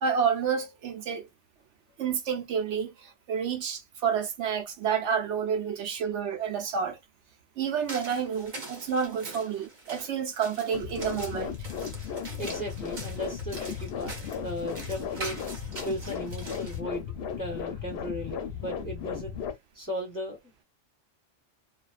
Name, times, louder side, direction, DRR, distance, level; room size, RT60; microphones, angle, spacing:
voice 1, 0.0-1.3 2.0-7.0 7.6-11.6, right 7 dB, 70° right, 0.9 m, -29 dB
sound 1, 7.6-16.8, right 2 dB, 40° right, 0.9 m, -43 dB
sound 2, 10.7-19.5, left 7 dB, 65° left, 0.7 m, -36 dB
voice 2, 12.4-15.5 15.8-17.1 17.4-19.4 19.7-20.4, equal, 20° left, 0.7 m, -36 dB
2.4 x 2.2 x 2.3 m
omnidirectional pair, 1.3 m